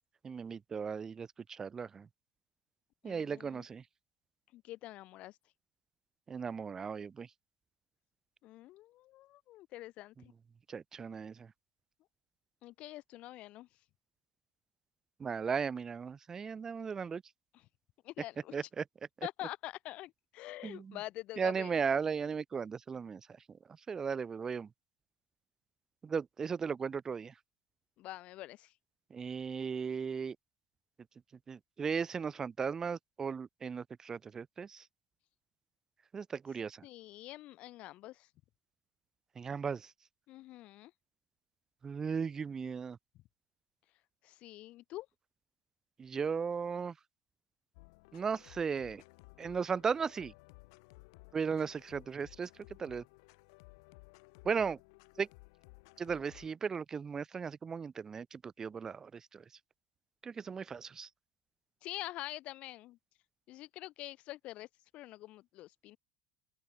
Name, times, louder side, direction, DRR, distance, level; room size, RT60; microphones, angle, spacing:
voice 1, 0.2-2.1 3.0-3.8 6.3-7.3 10.7-11.5 15.2-17.2 18.5-18.8 20.6-21.0 21.4-23.2 23.9-24.7 26.0-27.3 29.1-30.4 31.5-34.8 36.1-36.8 39.4-39.9 41.8-43.0 46.0-46.9 48.1-49.0 49.4-50.3 51.3-52.5 52.8-53.0 54.4-54.8 55.2-55.3 56.0-59.4 60.2-61.1, right 6 dB, 20° right, 0.5 m, -36 dB
voice 2, 3.0-3.7 4.5-5.4 8.4-10.3 12.6-13.7 17.5-17.7 18.0-18.5 19.2-21.7 28.0-28.7 36.8-38.3 40.3-40.9 44.2-45.1 61.8-63.0 63.5-64.7 64.9-66.0, left 16 dB, 50° left, 2.2 m, -46 dB
sound 1, 47.7-56.5, left 29 dB, 80° left, 2.8 m, -58 dB
open air
cardioid pair, 140°, 3 cm